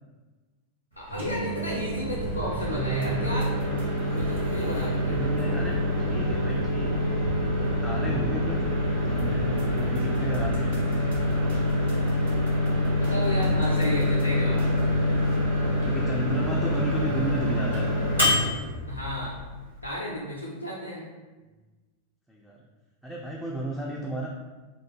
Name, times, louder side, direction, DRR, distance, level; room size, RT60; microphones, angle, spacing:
voice 1, 1.0-3.5 4.1-5.2 13.0-14.6 18.9-19.4 19.8-21.1, left 1 dB, 85° left, -5 dB, 0.4 m, -33 dB
Microwave oven, 1.0-19.8, left 1 dB, 90° right, 1.2 m, -26 dB
sound 1, 3.0-15.4, right 2 dB, 60° right, 0.6 m, -39 dB
voice 2, 5.0-11.1 13.4-13.6 15.3-18.2 22.3-22.7 23.0-24.3, right 1 dB, ahead, -3 dB, 0.3 m, -34 dB
3.1 x 2.2 x 3.1 m, 1.2 s
figure-of-eight pair, 90°, 0 cm